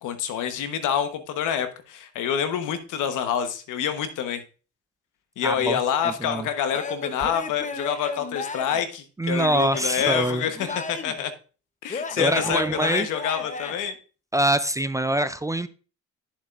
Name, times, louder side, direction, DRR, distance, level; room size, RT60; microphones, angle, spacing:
voice 1, 0.0-4.4 5.4-10.6 10.9-11.3 11.8-13.9, left 8 dB, 85° left, 9 dB, 1.1 m, -27 dB
voice 2, 5.4-6.5 9.2-10.8 12.2-13.1 14.3-15.7, right 1 dB, 10° right, 13 dB, 0.4 m, -25 dB
Male speech man speaking / Yell / Laughter, 6.7-8.8 9.5-11.2 11.9-13.7, left 4 dB, 25° left, 0.8 m, -34 dB
11.5 x 7.2 x 2.5 m, 0.36 s
cardioid pair, 90°, 30 cm